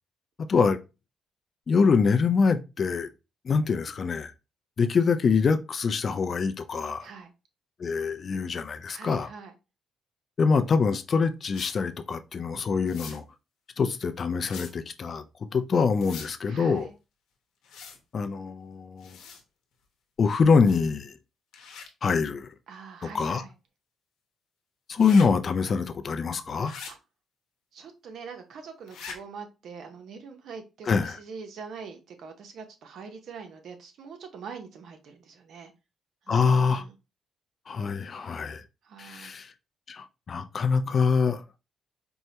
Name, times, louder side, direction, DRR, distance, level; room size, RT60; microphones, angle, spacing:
voice 1, 1.7-3.1 3.4-4.3 4.8-7.1 7.8-9.3 10.4-13.2 13.8-15.2 15.5-16.9 18.1-19.2 20.2-21.1 22.0-22.5 23.0-23.4 24.9-26.8 30.9-31.2 36.3-36.8 37.7-38.6 39.0-39.5 39.9-41.4, left 5 dB, 45° left, 0.4 m, -24 dB
voice 2, 7.0-7.3 8.9-9.5 16.5-16.9 22.7-23.5 26.9-27.0 27.7-35.7 36.3-36.9 38.8-39.3, right 5 dB, 70° right, 0.8 m, -43 dB
sound 1, 11.5-11.8 12.9-13.2 14.4-14.7 16.0-16.3 17.6-18.0 19.0-19.4 20.6-21.0 21.5-21.9 24.9-25.3 26.6-26.9 28.9-29.2, left 6 dB, 85° left, 0.8 m, -42 dB
4.5 x 2.1 x 2.8 m
cardioid pair, 90°, 0 cm